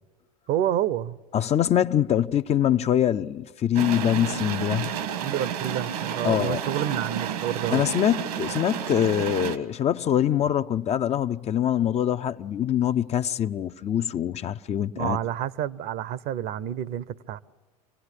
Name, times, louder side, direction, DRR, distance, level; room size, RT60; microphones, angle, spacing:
voice 1, 0.5-1.2 5.2-7.8 14.9-17.4, right 11 dB, 55° right, 0.9 m, -29 dB
voice 2, 1.3-5.0 6.2-6.6 7.7-15.2, left 10 dB, 35° left, 0.7 m, -24 dB
sound 1, 3.7-9.6, right 8 dB, 75° right, 1.7 m, -31 dB
26.5 x 18.0 x 9.9 m
hypercardioid pair, 85°, 19 cm